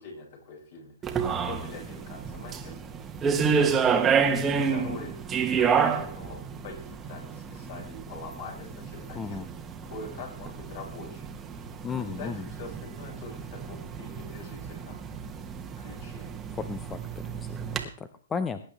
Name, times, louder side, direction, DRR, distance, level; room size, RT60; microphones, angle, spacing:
voice 1, 0.0-2.8 3.2-4.1 4.5-5.1 5.5-9.5 9.8-11.2 11.9-15.0 15.8-16.3, left 4 dB, 55° left, -1 dB, 7.4 m, -44 dB
sound 1, 1.0-17.8, right 6 dB, 15° right, 1.3 m, -30 dB
voice 2, 9.2-9.5 11.8-12.5 16.5-17.0 17.3-18.6, left 5 dB, 15° left, 11 dB, 0.7 m, -34 dB
21.0 x 10.5 x 3.4 m, 0.42 s
hypercardioid pair, 145°, 0 cm